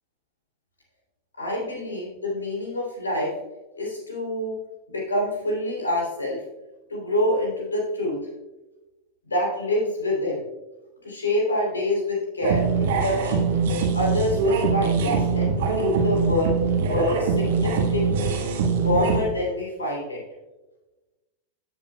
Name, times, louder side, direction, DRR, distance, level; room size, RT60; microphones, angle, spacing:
voice 1, 1.4-3.3 3.7-4.6 4.9-6.4 6.9-8.2 9.3-10.4 11.0-13.4 13.9-18.4 18.8-20.2, left 1 dB, 75° left, -2 dB, 3.0 m, -26 dB
sound 1, 12.4-19.2, right 5 dB, 55° right, 1.2 m, -23 dB
14.5 x 7.1 x 2.2 m, 1.1 s
figure-of-eight pair, 90°, 0 cm